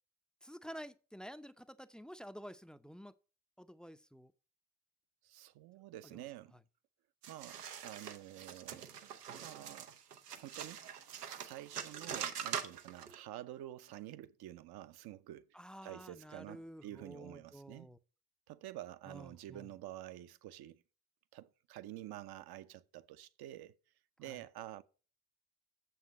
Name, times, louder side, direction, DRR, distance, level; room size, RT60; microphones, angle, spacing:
voice 1, 0.4-3.1 3.6-4.3 6.0-6.3 15.5-18.0 19.1-19.7 24.3-24.4, equal, ahead, 0.5 m, -50 dB
voice 2, 5.2-6.5 7.3-9.1 9.4-9.9 10.4-17.9 18.5-20.8 21.3-23.7 24.2-24.8, right 14 dB, 55° right, 0.8 m, -49 dB
sound 1, 7.2-13.2, right 8 dB, 90° right, 0.8 m, -44 dB
7.3 x 5.9 x 7.1 m
hypercardioid pair, 50°, 46 cm